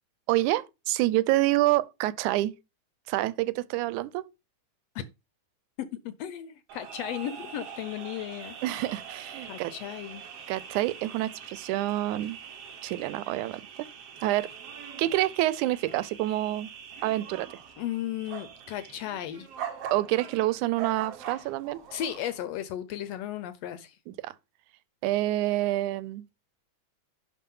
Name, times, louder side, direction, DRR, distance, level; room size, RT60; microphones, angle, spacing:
voice 1, 0.3-2.5 3.1-4.2 8.6-9.7 10.5-12.4 12.8-13.9 14.2-14.5 15.0-16.7 17.0-17.5 19.9-21.8 24.1-24.3 25.0-26.2, right 16 dB, 90° right, 2.1 m, -27 dB
voice 2, 5.8-8.8 9.4-10.2 17.8-19.5 21.9-24.0, left 11 dB, 75° left, 1.6 m, -35 dB
sound 1, 6.7-22.4, right 7 dB, 60° right, 2.1 m, -43 dB
11.0 x 3.7 x 5.4 m
omnidirectional pair, 3.4 m